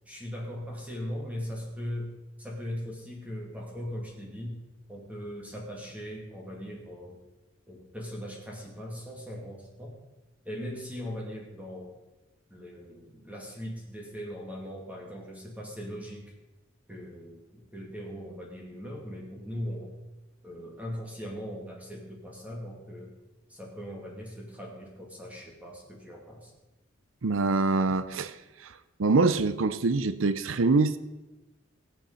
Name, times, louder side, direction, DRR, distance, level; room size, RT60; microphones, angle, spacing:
voice 1, 0.1-7.2 7.7-10.0 10.4-12.0 12.5-16.3 16.9-19.9 20.4-23.1 23.5-26.5, equal, 5° right, -2 dB, 2.5 m, -39 dB
voice 2, 27.2-28.4 28.6-28.7 29.0-31.0, right 3 dB, 70° right, 13 dB, 0.6 m, -24 dB
16.5 x 8.5 x 5.7 m, 1.0 s
head